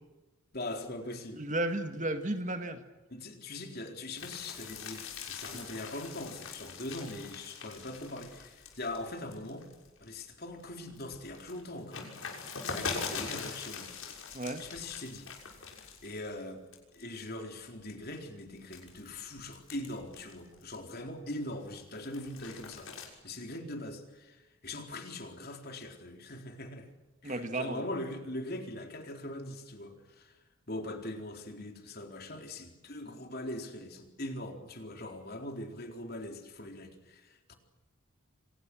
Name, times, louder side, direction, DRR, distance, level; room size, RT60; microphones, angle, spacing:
voice 1, 0.5-1.4 3.1-9.7 10.0-12.0 12.7-13.9 14.6-15.3 16.0-16.6 16.9-22.9 23.2-26.9 27.2-30.3 30.7-37.5, left 1 dB, 45° left, 4 dB, 4.1 m, -41 dB
voice 2, 1.3-2.8 5.5-5.6 14.3-14.6 27.2-27.8, right 1 dB, 35° right, 7 dB, 1.8 m, -33 dB
sound 1, 4.2-10.1 10.5-16.4 16.7-17.2 17.8-21.1 21.5-23.1, left 5 dB, 65° left, 6.5 m, -43 dB
29.0 x 25.5 x 6.3 m, 1.1 s
head